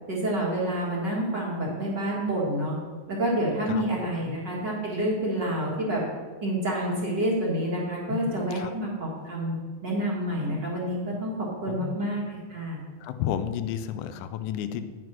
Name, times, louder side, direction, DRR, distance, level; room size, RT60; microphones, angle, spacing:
voice 1, 0.1-2.7 3.1-6.0 6.4-9.5 9.8-12.8, right 1 dB, 40° right, -4 dB, 1.7 m, -28 dB
voice 2, 13.0-14.8, left 10 dB, 90° left, 9 dB, 1.7 m, -31 dB
9.3 x 6.1 x 6.0 m, 1.6 s
omnidirectional pair, 4.2 m